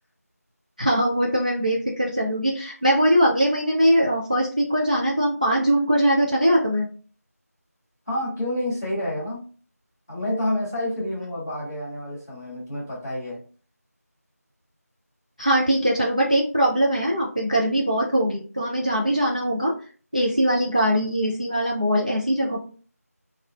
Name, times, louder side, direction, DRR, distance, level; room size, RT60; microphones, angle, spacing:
voice 1, 0.8-6.9 15.4-19.7 20.1-22.6, equal, 30° right, 0.3 m, -21 dB
voice 2, 8.1-9.4 10.1-13.4, left 1 dB, 10° left, 0.7 m, -28 dB
2.9 x 2.4 x 2.2 m
figure-of-eight pair, 170°, 9 cm